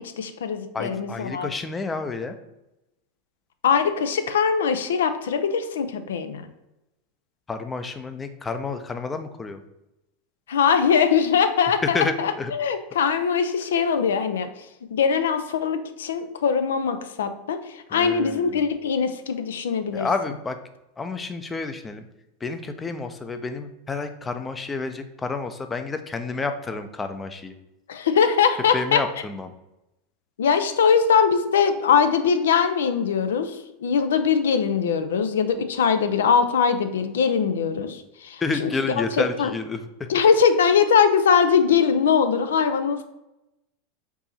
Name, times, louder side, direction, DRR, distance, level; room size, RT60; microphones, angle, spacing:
voice 1, 0.2-1.5 3.6-6.5 10.5-14.5 14.9-20.1 27.9-29.0 30.4-38.7 39.2-39.5 40.1-43.0, left 6 dB, 80° left, 9 dB, 0.4 m, -21 dB
voice 2, 0.7-2.4 7.5-9.6 11.9-12.5 17.9-18.6 19.9-20.6 21.0-22.1 22.4-27.6 28.7-29.5 38.4-40.1, left 4 dB, 20° left, 8 dB, 0.5 m, -30 dB
4.6 x 2.7 x 4.1 m, 0.93 s
hypercardioid pair, 100°, 0 cm